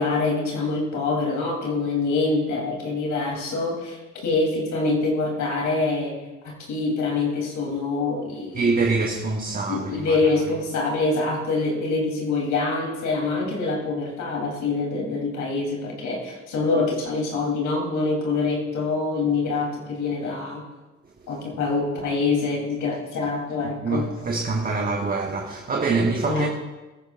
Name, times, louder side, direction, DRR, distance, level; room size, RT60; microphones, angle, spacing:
voice 1, 0.0-6.2 6.4-8.7 9.7-20.6 21.3-24.1 26.3-26.5, left 3 dB, 75° left, 3.4 m, -25 dB
voice 2, 8.5-10.2 23.8-26.5, right 3 dB, 30° right, 1.2 m, -24 dB
21.5 x 10.0 x 2.5 m
cardioid pair, 90°, 30 cm